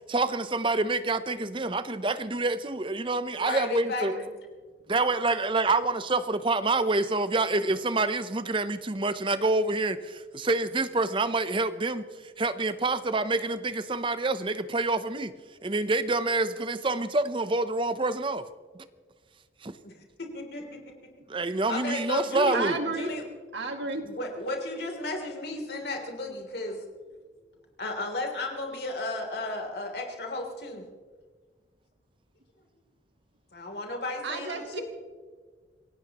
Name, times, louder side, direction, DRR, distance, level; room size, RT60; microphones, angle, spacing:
voice 1, 0.1-4.2 4.9-12.0 12.4-15.3 15.6-18.5 19.6-19.7 21.3-22.8, right 2 dB, 30° right, 12 dB, 0.7 m, -27 dB
voice 2, 3.4-4.3 19.8-21.1 21.7-23.2 24.0-26.8 27.8-30.8 33.5-34.8, left 2 dB, 65° left, 2 dB, 3.2 m, -34 dB
voice 3, 22.5-23.1 23.5-24.1 34.2-34.8, right 3 dB, 85° right, 4 dB, 2.2 m, -32 dB
27.5 x 16.5 x 3.0 m, 1.5 s
head